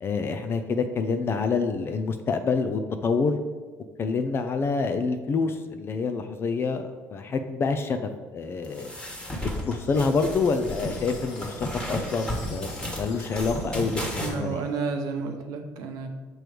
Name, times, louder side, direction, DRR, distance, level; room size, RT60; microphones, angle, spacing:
voice 1, 0.0-3.4 4.0-8.9 9.6-14.6, left 4 dB, 40° left, 8 dB, 0.4 m, -27 dB
sound 1, 8.6-14.3, equal, 15° left, 1.5 m, -33 dB
sound 2, 9.6-15.0, left 6 dB, 85° left, 0.7 m, -50 dB
voice 2, 14.2-16.3, right 4 dB, 80° right, 4 dB, 0.8 m, -31 dB
6.2 x 3.1 x 5.0 m, 1.4 s
cardioid pair, 100°, 6 cm